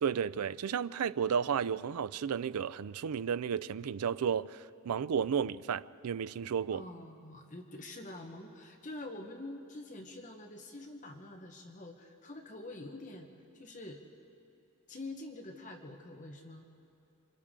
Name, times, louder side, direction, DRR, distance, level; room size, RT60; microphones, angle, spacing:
voice 1, 0.0-6.8, right 7 dB, 90° right, 0.4 m, -33 dB
voice 2, 6.7-13.3 13.5-14.0 14.9-16.7, left 2 dB, 35° left, 1.1 m, -46 dB
28.0 x 25.5 x 3.7 m
head